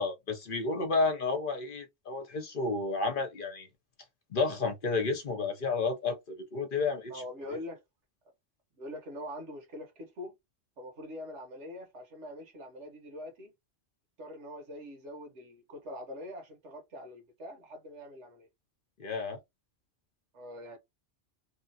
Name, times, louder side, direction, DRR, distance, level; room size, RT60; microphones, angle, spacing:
voice 1, 0.0-3.7 4.3-7.2 19.0-19.4, left 3 dB, 55° left, 0.8 m, -31 dB
voice 2, 7.1-7.8 8.8-10.3 10.8-13.5 14.2-18.5 20.3-20.8, left 1 dB, 75° right, 1.4 m, -43 dB
3.0 x 2.4 x 2.7 m
omnidirectional pair, 1.2 m